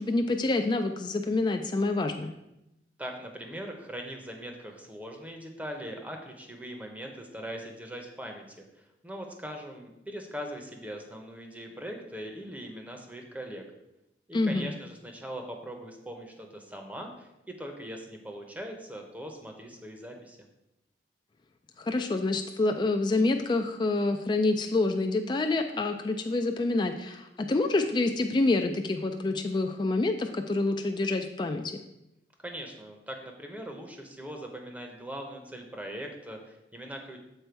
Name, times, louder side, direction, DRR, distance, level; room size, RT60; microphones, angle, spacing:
voice 1, 0.0-2.4 14.3-14.7 21.8-31.7, left 2 dB, 25° left, 5 dB, 0.3 m, -27 dB
voice 2, 3.0-13.6 14.3-20.4 32.4-37.2, equal, 10° right, 3 dB, 0.7 m, -41 dB
6.7 x 4.4 x 4.5 m, 0.88 s
head